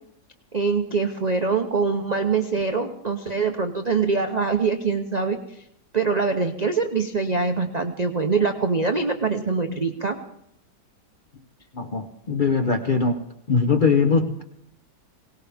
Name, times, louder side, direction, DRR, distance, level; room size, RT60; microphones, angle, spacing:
voice 1, 0.5-5.6 5.9-10.2, right 4 dB, 70° right, 5 dB, 0.4 m, -24 dB
voice 2, 11.7-13.2 13.5-14.4, left 4 dB, 80° left, 5 dB, 0.4 m, -21 dB
22.0 x 18.5 x 3.5 m, 0.77 s
omnidirectional pair, 2.0 m